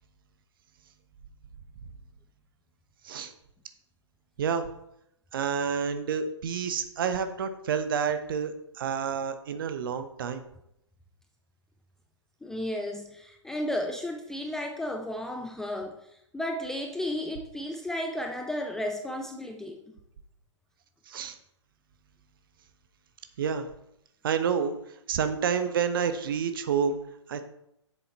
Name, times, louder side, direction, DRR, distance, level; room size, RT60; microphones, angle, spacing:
voice 1, 4.4-4.7 5.3-8.5 8.8-10.4 21.1-21.3 23.4-23.7 24.2-24.7 25.1-27.0 27.3-27.4, right 7 dB, 45° right, 10 dB, 0.9 m, -29 dB
voice 2, 12.4-16.0 16.3-19.8, left 1 dB, 5° left, 2 dB, 0.3 m, -33 dB
8.2 x 7.1 x 4.1 m, 0.80 s
figure-of-eight pair, 125°, 16 cm